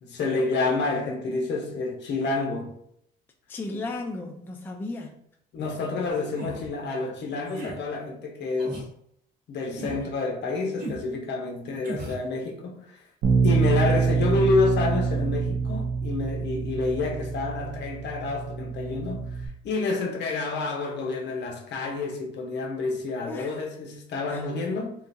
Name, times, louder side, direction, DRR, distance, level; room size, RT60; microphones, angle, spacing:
voice 1, 0.0-2.7 3.7-3.8 5.5-8.8 9.5-13.0 13.4-24.9, left 3 dB, 60° left, 0.8 m, -29 dB
voice 2, 3.5-5.2 23.3-23.6 24.3-24.5, left 2 dB, 10° left, 0.3 m, -35 dB
sound 1, 6.3-6.7 7.5-7.8 8.6-8.9 9.7-10.1 10.8-11.1 11.8-12.2, right 2 dB, 55° right, 1.2 m, -36 dB
Bass guitar, 13.2-19.5, right 5 dB, 75° right, 0.6 m, -26 dB
3.7 x 2.3 x 2.6 m
cardioid pair, 130°, 20 cm